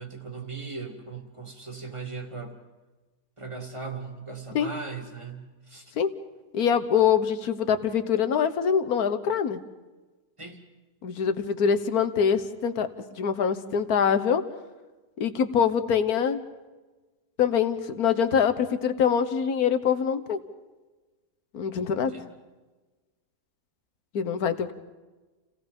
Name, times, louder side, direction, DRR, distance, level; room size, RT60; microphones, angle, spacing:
voice 1, 0.0-2.5 3.4-5.9 10.4-10.6 22.1-22.3, right 4 dB, 20° right, 3 dB, 2.3 m, -38 dB
voice 2, 6.5-9.6 11.0-14.4 15.2-16.4 17.4-20.4 21.5-22.1 24.1-24.7, left 7 dB, 65° left, 10 dB, 1.6 m, -24 dB
29.5 x 17.0 x 5.3 m, 1.2 s
omnidirectional pair, 1.7 m